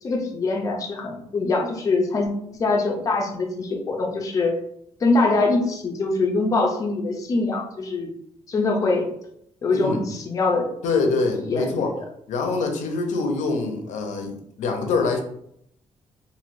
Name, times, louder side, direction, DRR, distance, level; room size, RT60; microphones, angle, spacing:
voice 1, 0.0-4.6 5.0-8.1 8.5-9.1 9.6-10.7 11.5-12.0, left 3 dB, 25° left, 2 dB, 0.4 m, -23 dB
voice 2, 9.7-10.0 10.8-11.9 12.3-15.2, left 3 dB, 80° left, 3 dB, 0.7 m, -24 dB
3.1 x 2.6 x 2.5 m, 0.71 s
cardioid pair, 180°, 13 cm